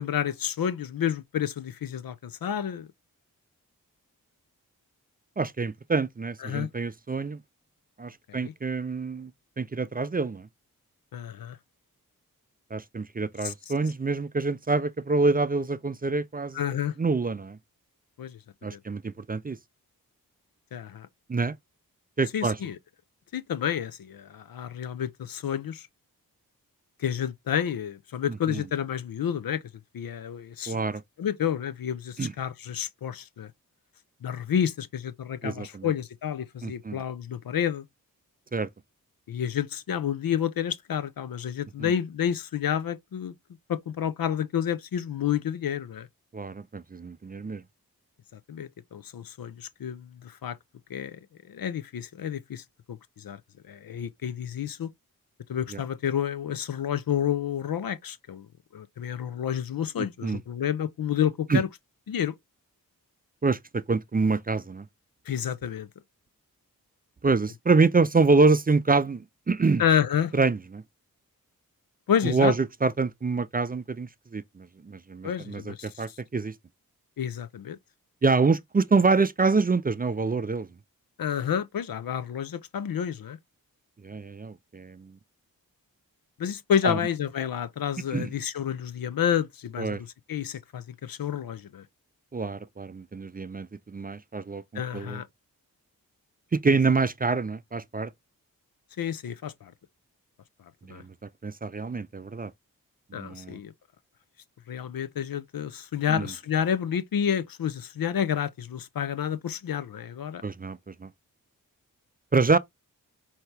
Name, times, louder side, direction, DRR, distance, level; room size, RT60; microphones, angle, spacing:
voice 1, 0.0-2.9 6.4-6.7 8.3-8.5 11.1-11.6 13.4-13.5 16.5-16.9 18.2-18.4 18.7-18.8 20.7-21.1 22.3-22.8 23.3-25.9 27.0-29.6 29.9-30.8 31.2-33.5 34.2-37.8 39.3-43.3 43.7-46.1 48.3-50.6 50.9-51.2 51.5-53.4 53.7-54.9 55.5-58.5 58.7-61.7 62.1-62.3 65.3-65.9 69.8-70.3 72.1-72.5 75.2-76.2 77.2-77.8 81.2-83.4 86.4-91.8 94.7-95.3 99.0-99.7 100.9-101.0 103.1-103.7 104.7-110.4, left 9 dB, 65° left, 0.7 m, -30 dB
voice 2, 5.4-7.4 8.0-9.3 9.6-10.5 12.7-17.6 18.6-19.6 21.3-21.5 22.2-22.6 28.3-28.6 30.7-31.0 32.2-32.3 35.4-35.9 36.6-37.0 38.5-38.7 41.8-41.9 46.3-47.6 55.7-55.8 60.0-60.4 61.5-61.6 63.4-64.8 67.2-69.8 70.3-70.8 72.2-76.5 78.2-80.7 84.0-85.1 86.8-87.0 88.1-88.3 89.8-90.0 92.3-95.2 96.5-98.1 100.9-101.0 101.4-102.5 103.1-103.6 106.1-106.3 110.4-111.1 112.3-112.6, right 4 dB, 25° right, 0.5 m, -26 dB
5.6 x 2.9 x 3.3 m
cardioid pair, 40°, 37 cm